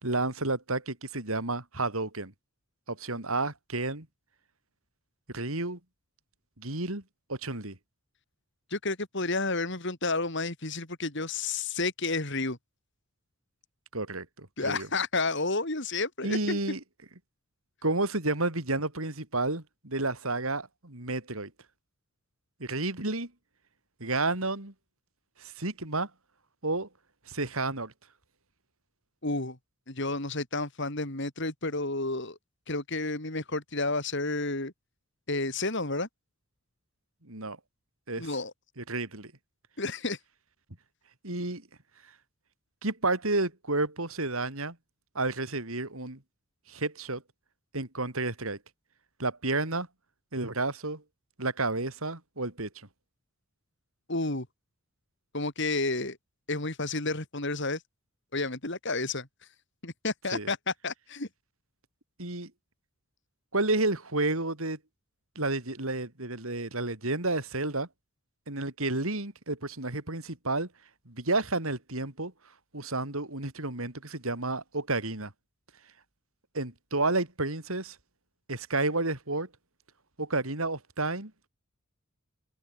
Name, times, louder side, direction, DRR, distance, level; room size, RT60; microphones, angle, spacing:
voice 1, 0.0-2.3 2.9-4.1 5.3-5.8 6.6-7.0 7.3-7.8 13.9-14.9 16.2-16.8 17.8-21.5 22.6-23.3 24.0-24.7 25.4-26.1 26.6-26.9 27.3-27.9 37.3-37.6 38.1-38.3 38.8-39.3 41.2-41.6 42.8-44.8 45.2-46.2 46.7-47.2 47.7-48.6 49.2-49.9 50.3-51.0 51.4-52.7 60.3-60.5 62.2-62.5 63.5-64.8 65.4-67.9 68.5-70.7 71.1-72.3 72.7-75.3 76.5-78.0 78.5-79.5 80.2-81.3, right 2 dB, 70° right, 3.9 m, -31 dB
voice 2, 8.7-12.6 14.6-16.6 29.2-29.6 29.9-32.4 32.7-34.7 35.3-36.1 38.2-38.5 39.8-40.2 54.1-54.5 55.3-56.2 56.5-57.8 58.3-59.3 59.8-61.3, left 3 dB, 55° left, 3.3 m, -31 dB
open air
head